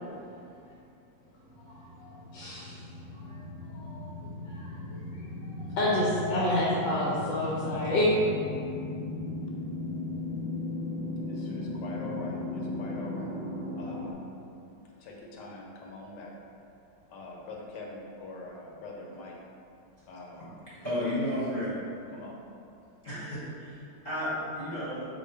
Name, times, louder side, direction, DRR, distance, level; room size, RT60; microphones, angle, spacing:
sound 1, 1.5-14.1, left 2 dB, 70° right, 1.0 m, -37 dB
voice 1, 1.6-2.9 3.1-3.4 3.7-4.1 4.4-8.1, left 1 dB, 90° left, -6 dB, 1.5 m, -30 dB
voice 2, 11.3-13.3 13.8-14.1 15.0-16.3 17.1-19.4 20.1-20.5 22.1-22.3, left 2 dB, 70° left, -1 dB, 1.2 m, -43 dB
voice 3, 20.8-21.8 23.0-25.1, equal, 30° left, -10 dB, 1.0 m, -32 dB
4.4 x 2.5 x 4.4 m, 2.6 s
omnidirectional pair, 2.0 m